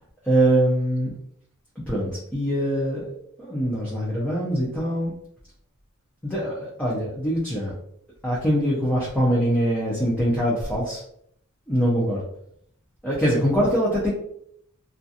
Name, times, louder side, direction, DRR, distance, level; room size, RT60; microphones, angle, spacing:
voice 1, 0.2-1.2 1.9-3.0 3.4-5.1 6.2-7.7 8.2-11.0 11.7-12.2 13.0-14.1, equal, 5° left, -7 dB, 0.6 m, -23 dB
2.7 x 2.5 x 2.4 m, 0.69 s
head